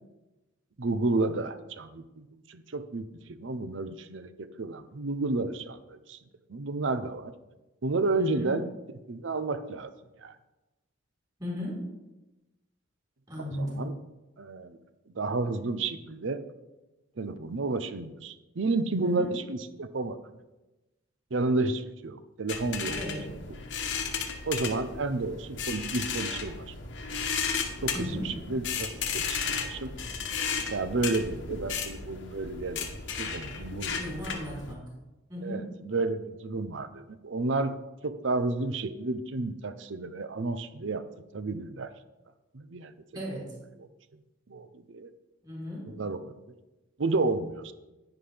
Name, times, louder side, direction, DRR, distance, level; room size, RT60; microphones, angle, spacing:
voice 1, 0.8-6.2 6.5-7.3 7.8-8.6 9.1-9.9 10.2-10.3 13.5-13.9 14.4-14.8 15.1-16.4 17.2-20.2 21.3-23.0 24.5-26.7 27.8-29.9 30.7-34.0 35.4-41.0 41.3-41.9 42.5-43.2 43.8-43.9 44.5-45.1 45.9-46.3 47.0-47.7, right 3 dB, 70° right, 12 dB, 0.6 m, -31 dB
voice 2, 8.2-8.5 11.4-11.8 13.3-13.9 19.0-19.3 22.9-23.3 27.9-28.3 33.9-34.9 35.3-35.7 43.1-43.5 45.4-45.9, left 1 dB, 20° right, -5 dB, 4.0 m, -36 dB
sound 1, 22.5-34.7, left 5 dB, 65° left, 1.1 m, -34 dB
10.5 x 9.6 x 3.4 m, 1.0 s
head